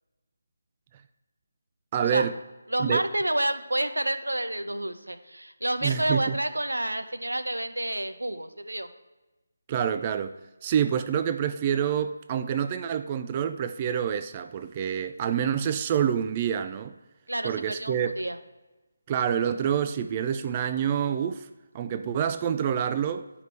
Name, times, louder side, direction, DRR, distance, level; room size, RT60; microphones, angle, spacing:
voice 1, 1.9-2.4 2.8-3.0 5.8-6.4 9.7-10.4 10.6-16.9 17.4-18.1 19.1-21.5 21.7-23.3, right 8 dB, 25° right, 0.3 m, -27 dB
voice 2, 2.7-8.9 17.3-18.4, right 1 dB, 85° right, 0.8 m, -29 dB
11.0 x 5.1 x 3.2 m
figure-of-eight pair, 155°, 0 cm